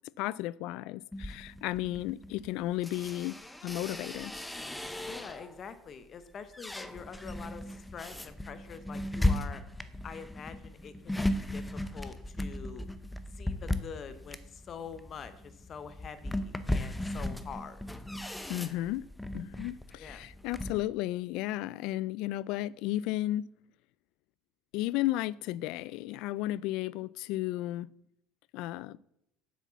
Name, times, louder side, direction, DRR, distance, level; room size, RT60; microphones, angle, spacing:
voice 1, 0.2-3.4 3.6-4.3 18.5-19.1 19.3-23.5 24.7-27.9 28.5-29.0, left 15 dB, 60° left, 0.3 m, -33 dB
sound 1, 1.1-5.6 6.1-20.8, left 1 dB, 5° left, 0.5 m, -36 dB
voice 2, 5.0-9.6 10.0-11.6 11.9-12.9 13.3-17.8 20.0-20.2, left 6 dB, 30° left, 0.9 m, -45 dB
8.3 x 7.3 x 6.9 m
cardioid pair, 170°, 0 cm